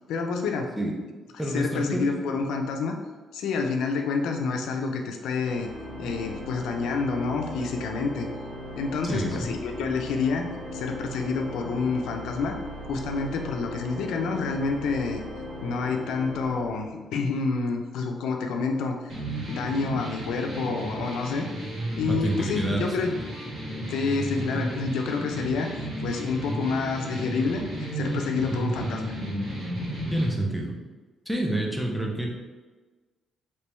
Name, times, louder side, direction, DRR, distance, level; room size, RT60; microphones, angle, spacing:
voice 1, 0.1-0.7 1.5-3.0 3.3-5.7 6.0-8.3 8.8-12.6 12.8-15.2 15.6-19.0 19.5-21.5 22.0-23.1 23.9-29.2, left 4 dB, 85° left, 3 dB, 0.4 m, -28 dB
voice 2, 1.4-2.1 9.1-9.5 22.1-22.8 30.1-30.8 31.3-32.3, right 1 dB, 5° right, -1 dB, 0.7 m, -28 dB
Organ, 5.4-17.2, equal, 80° right, 1.3 m, -39 dB
sound 1, 19.1-30.3, right 1 dB, 50° right, 1.4 m, -33 dB
3.3 x 2.9 x 3.0 m, 1.3 s
cardioid pair, 105°, 0 cm